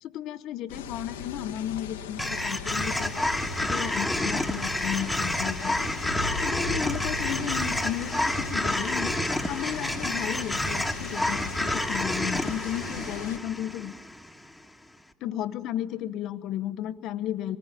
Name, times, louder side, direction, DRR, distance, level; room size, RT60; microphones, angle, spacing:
voice 1, 0.0-3.2 3.6-5.9 6.4-9.1 9.5-13.9 15.2-17.6, left 11 dB, 60° left, 11 dB, 0.8 m, -34 dB
sound 1, 0.7-13.4, left 6 dB, 85° left, 1.2 m, -38 dB
sound 2, 2.2-14.5, left 1 dB, 5° left, 1.7 m, -29 dB
25.0 x 20.0 x 9.1 m, 1.3 s
hypercardioid pair, 65°, 0 cm